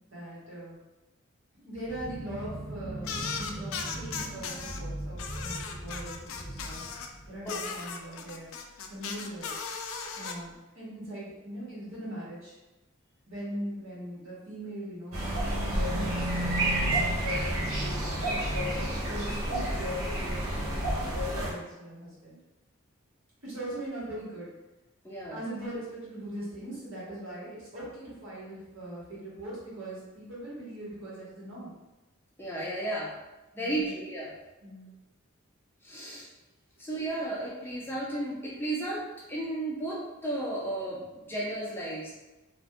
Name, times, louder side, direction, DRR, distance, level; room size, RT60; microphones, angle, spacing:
voice 1, 0.1-0.8 1.6-8.5 8.9-9.5 10.1-12.6 13.3-18.7 19.1-22.4 23.4-24.5 25.3-31.7 33.5-33.9 34.6-34.9, right 1 dB, 60° right, -8 dB, 1.4 m, -41 dB
sound 1, 1.8-7.8, right 1 dB, 30° right, 0.7 m, -40 dB
sound 2, 3.0-4.8 5.2-7.1 7.5-10.3, left 5 dB, 65° left, 0.3 m, -37 dB
sound 3, 15.1-21.5, right 1 dB, 80° right, 0.8 m, -29 dB
voice 2, 25.0-25.4 32.4-33.1 33.5-34.3 35.8-36.3 36.8-42.1, right 1 dB, 10° left, -6 dB, 0.5 m, -34 dB
2.6 x 2.5 x 3.4 m, 1.1 s
head